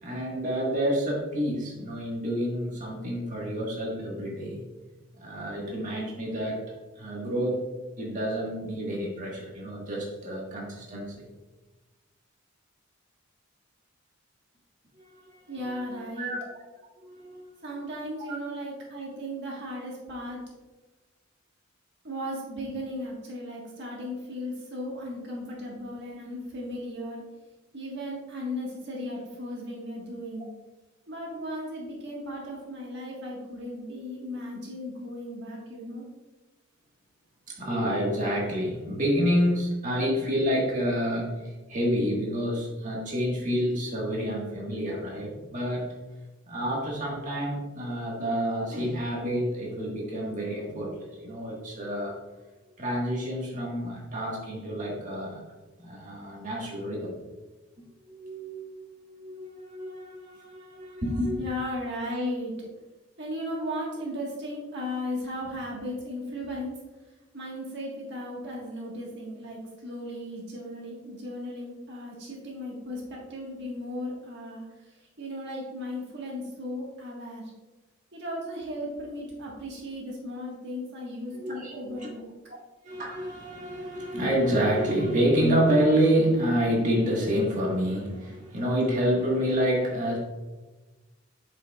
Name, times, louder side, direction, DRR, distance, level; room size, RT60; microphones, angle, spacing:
voice 1, 0.0-4.7 5.2-6.6 6.9-7.6 8.0-11.3 15.2-16.4 17.0-17.4 18.3-18.4 37.5-45.9 46.5-52.2 52.8-55.4 55.8-57.2 58.0-61.4 81.3-82.1 82.8-90.2, equal, 40° right, -3 dB, 1.6 m, -28 dB
voice 2, 15.5-16.3 17.6-20.4 22.0-27.2 27.7-30.5 31.1-36.0 61.4-62.5 63.2-66.8 67.3-77.5 78.1-82.2, left 1 dB, 60° right, -3 dB, 1.6 m, -36 dB
8.2 x 6.8 x 2.4 m, 1.2 s
head